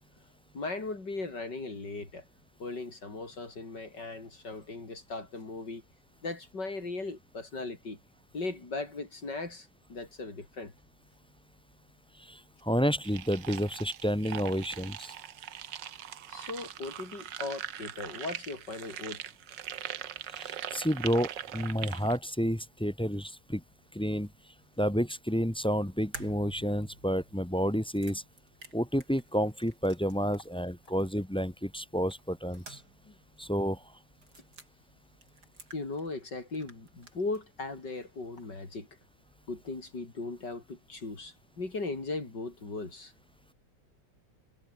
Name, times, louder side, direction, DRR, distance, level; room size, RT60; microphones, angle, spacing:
voice 1, 0.5-2.2 2.6-5.8 6.2-8.0 8.3-10.7 16.3-19.2 33.0-33.1 35.7-38.9 39.5-43.1, left 3 dB, 70° left, 5.5 m, -38 dB
voice 2, 12.3-15.1 20.3-23.6 23.9-24.3 24.8-28.2 28.7-32.8 33.4-33.8, equal, 5° left, 1.3 m, -30 dB
sound 1, 13.0-22.2, right 10 dB, 85° right, 1.8 m, -41 dB
sound 2, 26.1-30.6 30.8-30.9 32.1-33.1 33.4-33.5 34.1-34.7 35.2-36.3 36.5-37.4, right 2 dB, 65° right, 6.8 m, -50 dB
omnidirectional pair, 1.9 m